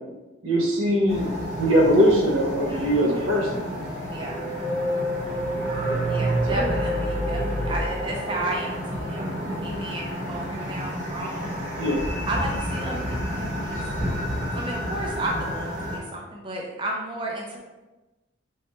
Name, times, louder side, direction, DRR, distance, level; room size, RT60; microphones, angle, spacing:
voice 1, 0.4-1.3 1.6-3.7 5.9-6.0 6.5-6.8 11.8-12.0, equal, 90° right, -2 dB, 0.8 m, -21 dB
sound 1, 1.1-16.0, equal, 40° right, 1.1 m, -31 dB
voice 2, 2.7-3.3 4.1-4.4 6.0-11.6 12.3-14.3 14.5-17.7, right 1 dB, 25° right, -1 dB, 0.4 m, -33 dB
sound 2, 4.3-8.9, right 1 dB, 35° left, 0.7 m, -28 dB
3.2 x 3.1 x 2.9 m, 1.1 s
head